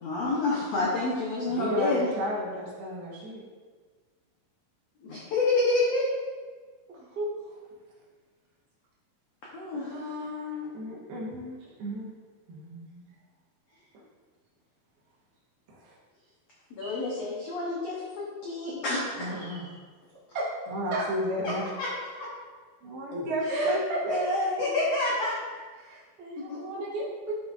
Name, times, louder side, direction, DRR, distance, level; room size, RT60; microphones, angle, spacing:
voice 1, 0.0-2.1 5.0-6.0 9.5-9.9 16.7-19.6 21.4-21.5 21.8-21.9 22.2-22.3 23.5-23.7 24.1-24.2 24.6-25.3 26.5-26.6, left 2 dB, 80° left, -6 dB, 1.4 m, -28 dB
voice 2, 1.5-3.4 9.7-12.1 12.5-13.0 15.7-16.0 16.8-17.1 19.2-19.7 20.7-21.7 22.8-23.8 24.0-24.7, equal, 75° right, -4 dB, 3.3 m, -33 dB
voice 3, 6.9-7.6 20.3-20.5 20.9-21.0 23.5-24.0 24.6-24.7 25.8-27.4, right 2 dB, 55° right, -8 dB, 0.7 m, -32 dB
10.5 x 5.4 x 2.6 m, 1.4 s
omnidirectional pair, 4.5 m